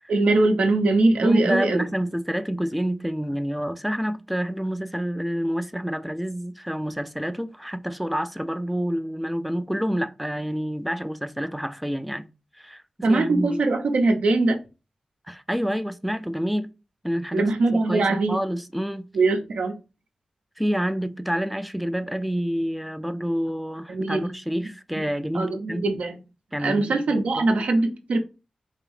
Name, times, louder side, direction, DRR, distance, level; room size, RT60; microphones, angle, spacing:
voice 1, 0.1-1.9 13.0-14.6 17.3-18.4 19.1-19.8 23.9-24.3 25.0-25.1 25.3-26.2 26.6-28.2, right 2 dB, 85° right, 0.6 m, -22 dB
voice 2, 1.2-12.3 12.6-13.6 15.3-16.7 17.0-19.1 20.6-25.8 26.5-27.5, equal, ahead, 0.3 m, -28 dB
3.9 x 2.7 x 3.2 m
cardioid pair, 50°, 2 cm